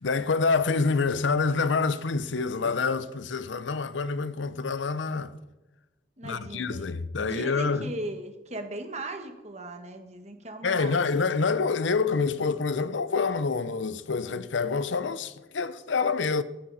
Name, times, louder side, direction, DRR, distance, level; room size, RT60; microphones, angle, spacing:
voice 1, 0.0-5.4 6.2-7.9 10.6-16.4, left 4 dB, 85° left, 0.7 m, -27 dB
voice 2, 6.2-6.9 7.2-11.0, right 2 dB, 40° right, 1.6 m, -38 dB
14.5 x 14.0 x 4.1 m
head